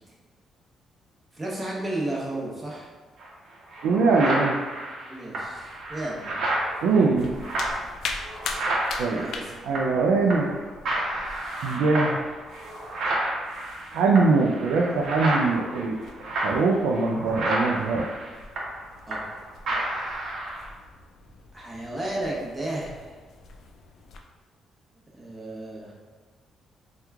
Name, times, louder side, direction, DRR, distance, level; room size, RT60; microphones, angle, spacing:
voice 1, 1.3-2.9 5.1-6.4 9.1-9.5 19.1-19.5 21.5-23.2 25.1-25.9, right 1 dB, 20° right, -4 dB, 0.9 m, -33 dB
sound 1, 3.2-3.3 3.7-10.0 10.3-10.6 10.9-19.4 19.7-20.7, right 1 dB, 70° right, 0.7 m, -30 dB
voice 2, 3.8-4.6 6.8-7.3 9.0-9.3 9.6-10.5 11.6-12.3 13.9-16.0 16.4-18.1, right 3 dB, 90° right, -1 dB, 0.3 m, -22 dB
sound 2, 5.3-24.2, left 4 dB, 70° left, 0.3 m, -43 dB
2.9 x 2.3 x 3.5 m, 1.4 s
cardioid pair, 90°, 0 cm